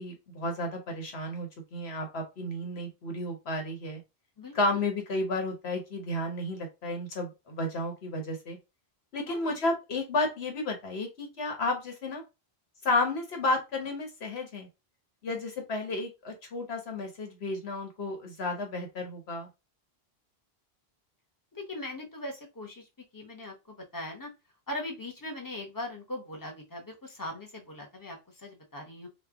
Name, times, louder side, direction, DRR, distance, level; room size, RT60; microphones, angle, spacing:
voice 1, 0.0-4.0 4.5-8.6 9.1-12.2 12.8-14.7 15.2-19.5, left 2 dB, 80° left, 3 dB, 1.4 m, -32 dB
voice 2, 4.4-4.8 9.3-9.5 21.6-22.8 23.1-24.3 24.7-29.1, left 1 dB, 20° left, 1 dB, 0.9 m, -40 dB
3.2 x 2.4 x 3.5 m, 0.25 s
omnidirectional pair, 1.1 m